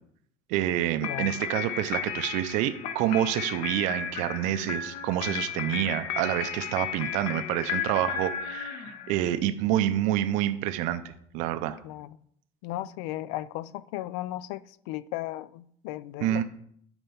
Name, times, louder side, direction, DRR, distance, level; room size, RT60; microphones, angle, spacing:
voice 1, 0.5-11.8 16.2-16.4, right 12 dB, 60° right, 0.5 m, -28 dB
voice 2, 1.0-1.4 11.8-12.2 12.6-16.4, left 15 dB, 80° left, 0.4 m, -36 dB
sound 1, 1.0-9.3, left 8 dB, 50° left, 0.8 m, -34 dB
9.0 x 4.4 x 5.5 m
cardioid pair, 165°, 14 cm